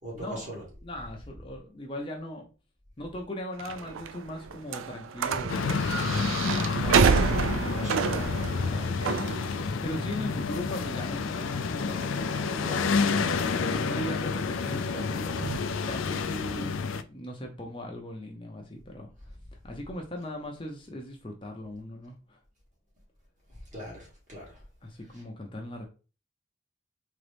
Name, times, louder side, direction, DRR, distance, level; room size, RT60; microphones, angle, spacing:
voice 1, 0.0-0.6 7.4-8.1 23.7-24.6, equal, 40° right, 2.3 m, -41 dB
voice 2, 0.8-2.5 3.0-19.4 19.6-22.4 24.8-25.9, left 1 dB, 25° left, 0.7 m, -39 dB
sound 1, 3.6-15.6, right 5 dB, 75° right, 0.4 m, -30 dB
sound 2, 5.5-17.0, left 5 dB, 75° left, 0.4 m, -29 dB
3.9 x 3.5 x 3.4 m
head